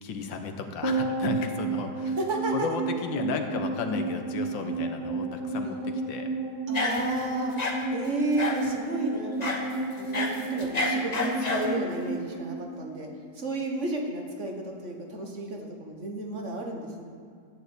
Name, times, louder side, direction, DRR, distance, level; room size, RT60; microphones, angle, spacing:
voice 1, 0.0-2.2 2.5-6.3, left 5 dB, 85° left, 5 dB, 1.7 m, -33 dB
sound 1, 0.8-13.4 13.6-13.7, right 3 dB, 15° right, 1.4 m, -32 dB
sound 2, 6.7-7.2 7.6-7.8 8.4-8.7 9.4-9.6 10.0-11.7, left 3 dB, 30° left, 0.9 m, -29 dB
voice 2, 6.7-7.5 7.9-9.5 10.0-13.1 13.4-17.0, right 2 dB, 40° right, 1 dB, 1.6 m, -32 dB
12.5 x 6.7 x 8.2 m, 2.2 s
omnidirectional pair, 2.0 m